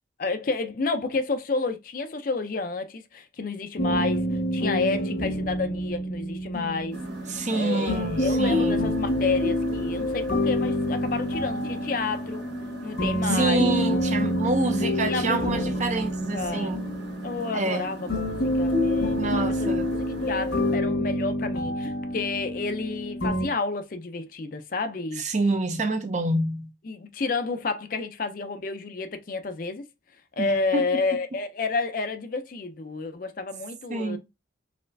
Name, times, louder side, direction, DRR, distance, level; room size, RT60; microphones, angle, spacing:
voice 1, 0.2-4.2 4.5-7.0 7.5-12.4 12.8-13.7 15.1-15.8 16.3-16.7 17.2-19.8 20.2-25.3 26.8-29.8 30.4-34.2, left 3 dB, 45° left, 0.5 m, -30 dB
sound 1, 3.8-23.5, left 1 dB, 90° left, 1.5 m, -27 dB
sound 2, 6.9-20.8, right 1 dB, 60° right, 1.1 m, -41 dB
voice 2, 7.3-8.9 13.3-16.8 17.5-17.9 19.2-19.9 25.2-26.7 30.4-30.9 33.9-34.2, right 2 dB, 40° right, 0.6 m, -27 dB
4.2 x 3.1 x 2.6 m
head